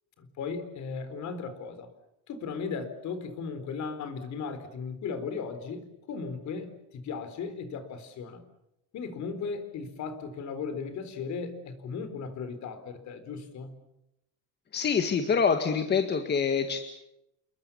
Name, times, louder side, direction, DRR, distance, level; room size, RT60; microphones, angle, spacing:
voice 1, 0.2-1.9 2.3-8.4 8.9-13.7, left 5 dB, 50° left, 11 dB, 4.0 m, -36 dB
voice 2, 14.7-16.8, left 6 dB, 30° left, 6 dB, 1.9 m, -25 dB
29.5 x 21.0 x 7.1 m, 0.85 s
cardioid pair, 150°, 36 cm